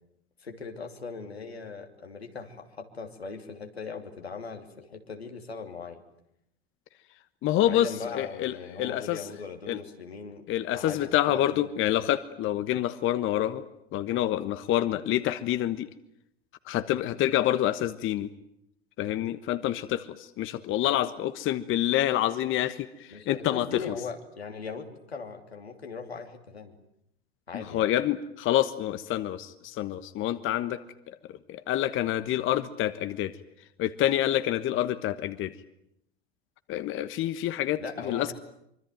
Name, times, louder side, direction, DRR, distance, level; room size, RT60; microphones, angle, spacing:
voice 1, 0.4-6.0 7.6-10.5 10.7-11.7 23.1-26.7 27.5-27.9 37.8-38.3, left 5 dB, 85° left, 4 dB, 3.2 m, -39 dB
voice 2, 7.4-9.3 9.7-9.8 10.5-13.6 13.9-15.9 16.7-18.3 19.0-23.9 27.5-30.8 31.1-31.2 31.5-33.3 33.8-35.5 36.7-38.3, left 12 dB, 40° left, 12 dB, 1.3 m, -27 dB
25.0 x 24.5 x 9.3 m, 0.78 s
figure-of-eight pair, 80°, 31 cm